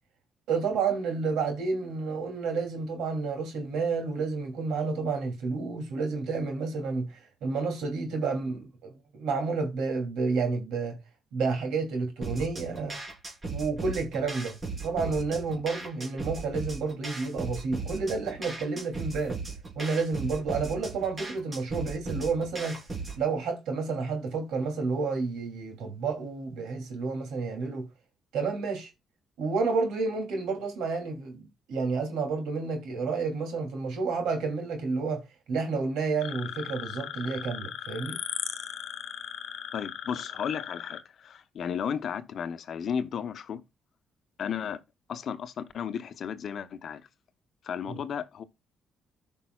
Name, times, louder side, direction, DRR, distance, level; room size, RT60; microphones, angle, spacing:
voice 1, 0.5-11.0 11.3-13.0 13.5-14.5 14.8-19.4 19.7-22.8 23.1-27.9 28.3-28.9 29.4-38.2 47.9-48.0, right 4 dB, 85° right, 2.7 m, -30 dB
sound 1, 12.2-23.2, right 4 dB, 30° right, 3.3 m, -37 dB
sound 2, 36.2-41.0, left 10 dB, 90° left, 0.9 m, -37 dB
voice 2, 39.7-43.6 44.4-44.8 45.1-47.0 47.6-48.4, left 7 dB, 60° left, 0.8 m, -34 dB
14.5 x 5.4 x 2.3 m
cardioid pair, 90°, 0 cm